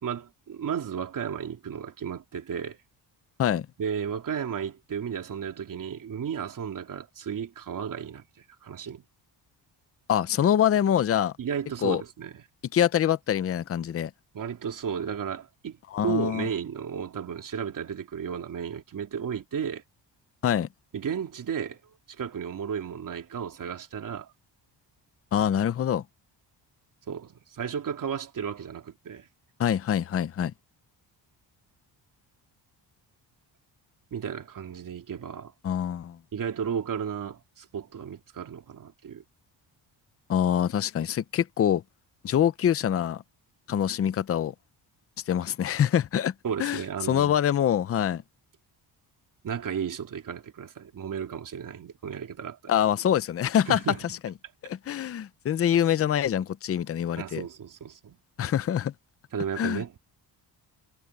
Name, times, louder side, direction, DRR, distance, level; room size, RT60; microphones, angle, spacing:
voice 1, 0.0-2.8 3.8-8.2 8.6-9.0 11.4-12.4 14.3-19.8 20.9-21.8 22.2-24.3 27.1-29.3 34.1-35.5 36.3-39.2 46.4-47.4 49.4-52.7 53.7-54.0 57.2-58.2 59.3-60.0, right 7 dB, 45° right, 3.3 m, -34 dB
voice 2, 10.1-11.3 11.8-12.0 12.7-14.1 15.9-16.5 20.4-20.7 25.3-26.0 29.6-30.5 35.6-36.2 40.3-41.8 42.2-43.2 43.7-44.5 45.3-46.3 46.6-46.8 47.1-48.2 52.7-53.8 54.2-54.3 54.6-57.4 58.4-58.9 59.6-59.8, left 10 dB, 35° left, 0.5 m, -25 dB
wide cardioid pair, 180°, 43 cm